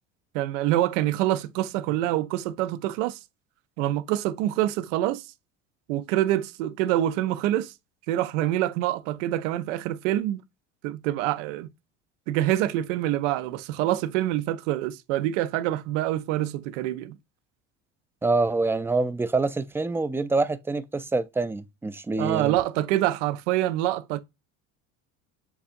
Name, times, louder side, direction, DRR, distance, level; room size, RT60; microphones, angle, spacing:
voice 1, 0.3-3.2 3.8-5.3 5.9-7.7 8.1-10.4 10.8-11.7 12.3-17.2 22.2-24.2, right 14 dB, 80° right, 0.6 m, -26 dB
voice 2, 18.2-22.6, right 3 dB, 5° right, 0.3 m, -26 dB
7.0 x 2.6 x 2.5 m
supercardioid pair, 90°, 36 cm